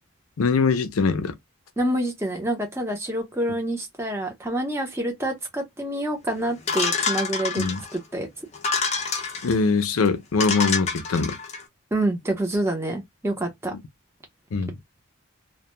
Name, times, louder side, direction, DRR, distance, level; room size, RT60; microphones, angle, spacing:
voice 1, 0.4-1.4 7.6-7.8 9.4-11.4 14.5-14.7, left 4 dB, 85° left, 0.5 m, -22 dB
voice 2, 1.8-7.6 7.9-8.3 11.9-13.7, right 1 dB, 10° right, 0.7 m, -27 dB
sound 1, 6.7-8.0 8.5-9.6 10.1-10.2 10.4-11.6, left 5 dB, 30° left, 0.5 m, -27 dB
2.2 x 2.1 x 2.9 m
head